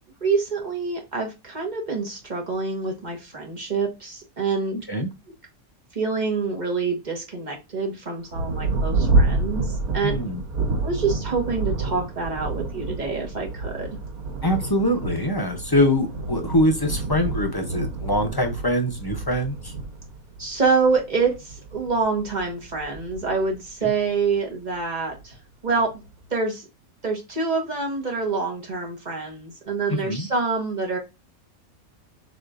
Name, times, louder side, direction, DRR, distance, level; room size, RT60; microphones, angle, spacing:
voice 1, 0.2-4.8 5.9-10.1 10.8-13.9 20.4-25.4 25.6-25.9 26.3-26.6 27.0-31.0, right 4 dB, 35° right, 1 dB, 1.3 m, -26 dB
Thunder, 8.3-24.4 25.1-25.2 25.8-26.2, right 3 dB, 85° right, 1.5 m, -28 dB
voice 2, 10.0-10.4 14.4-19.7 23.8-23.9 29.9-30.3, left 1 dB, 30° left, 4 dB, 0.4 m, -23 dB
6.6 x 3.1 x 2.5 m, 0.25 s
omnidirectional pair, 1.5 m